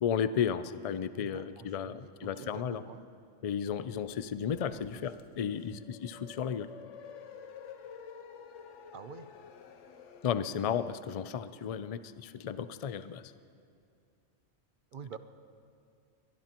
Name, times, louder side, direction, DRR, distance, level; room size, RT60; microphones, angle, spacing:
voice 1, 0.0-2.8 3.4-6.7 10.2-13.2, left 8 dB, 65° left, 13 dB, 0.3 m, -33 dB
voice 2, 0.9-3.0 4.8-5.1 5.5-5.8 8.9-9.3 14.9-15.2, right 7 dB, 50° right, 11 dB, 0.7 m, -48 dB
sound 1, 4.0-10.5, left 6 dB, 80° left, 1.1 m, -50 dB
23.0 x 21.0 x 3.0 m, 2.4 s
omnidirectional pair, 1.3 m